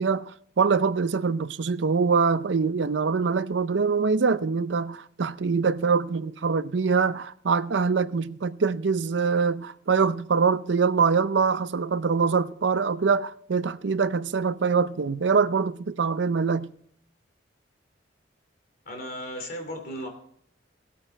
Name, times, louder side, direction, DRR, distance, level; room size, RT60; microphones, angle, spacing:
voice 1, 0.0-16.7, right 5 dB, 75° right, 0.5 m, -24 dB
voice 2, 18.9-20.1, equal, 55° left, 2.9 m, -35 dB
16.0 x 8.6 x 4.4 m
head